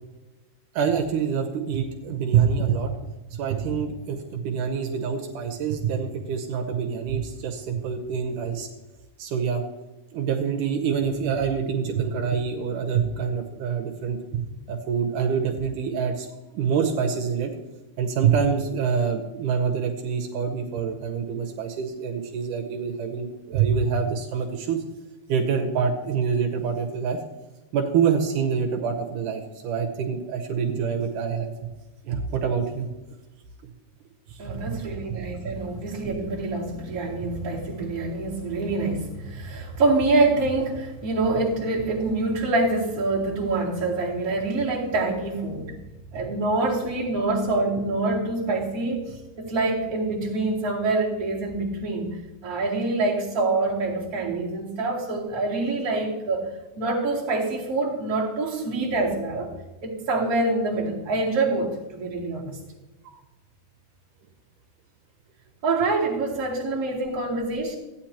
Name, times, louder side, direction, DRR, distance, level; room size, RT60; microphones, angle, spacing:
voice 1, 0.7-3.0 3.3-8.7 9.2-9.6 10.1-14.4 14.7-16.3 16.5-17.5 18.0-24.8 25.3-27.2 27.7-31.5 32.0-32.9 34.3-34.9 63.1-63.2, right 6 dB, 80° right, 3 dB, 2.4 m, -26 dB
voice 2, 34.4-45.7 46.1-52.2 52.4-56.5 56.8-59.5 59.8-62.6 65.6-67.8, right 2 dB, 30° right, -5 dB, 2.5 m, -26 dB
14.5 x 9.3 x 2.9 m, 1.1 s
omnidirectional pair, 3.7 m